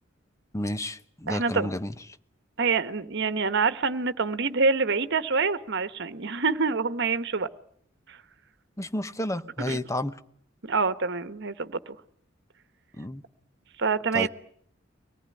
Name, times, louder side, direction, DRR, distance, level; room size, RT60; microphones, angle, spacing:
voice 1, 0.5-1.9 8.8-10.1 13.0-13.2 14.1-14.3, left 1 dB, 15° left, 1.0 m, -31 dB
voice 2, 1.3-1.7 2.6-7.5 8.1-8.2 9.7-9.8 10.6-12.0 13.8-14.3, right 4 dB, 60° right, 1.3 m, -26 dB
24.0 x 19.0 x 9.8 m
head